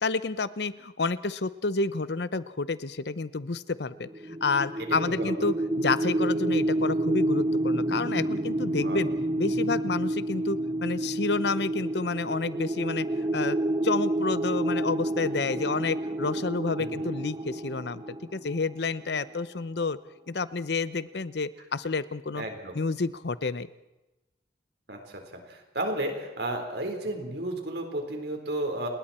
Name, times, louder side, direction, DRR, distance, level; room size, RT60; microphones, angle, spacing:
voice 1, 0.0-9.1 9.4-13.1 13.3-13.6 13.8-20.0 20.3-22.4 22.7-23.7, left 4 dB, 70° left, 15 dB, 0.8 m, -30 dB
sound 1, 4.1-19.1, right 1 dB, 25° right, 0.7 m, -29 dB
voice 2, 4.8-5.3 8.8-9.0 16.8-17.1 22.3-22.8 24.9-28.9, right 1 dB, 70° right, 3 dB, 4.2 m, -33 dB
30.0 x 20.5 x 4.4 m, 0.99 s
head